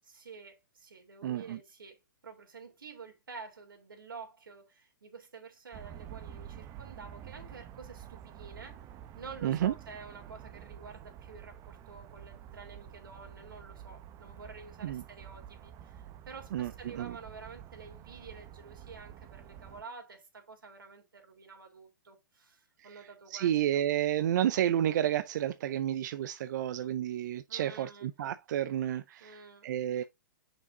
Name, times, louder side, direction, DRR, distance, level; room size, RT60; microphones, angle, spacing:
voice 1, 0.0-8.8 9.2-23.8 27.5-28.1 29.2-29.7, right 4 dB, 90° right, 3.5 m, -49 dB
voice 2, 1.2-1.6 9.4-9.7 14.8-15.0 16.5-17.2 22.8-30.0, right 11 dB, 60° right, 0.5 m, -31 dB
sound 1, 5.7-19.8, right 10 dB, 25° right, 0.8 m, -49 dB
7.0 x 6.0 x 2.7 m
hypercardioid pair, 130°, 11 cm